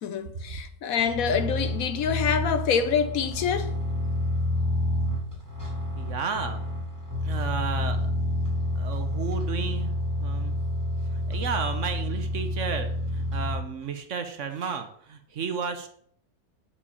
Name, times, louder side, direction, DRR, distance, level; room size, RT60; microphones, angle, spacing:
voice 1, 0.0-3.7, left 7 dB, 65° left, 1.1 m, -26 dB
sound 1, 1.0-13.6, left 1 dB, 10° right, 2.2 m, -29 dB
voice 2, 6.0-6.6 7.2-8.1 8.8-9.9 10.2-10.6 11.1-15.9, right 6 dB, 55° right, 1.1 m, -33 dB
7.1 x 5.2 x 6.9 m
omnidirectional pair, 1.6 m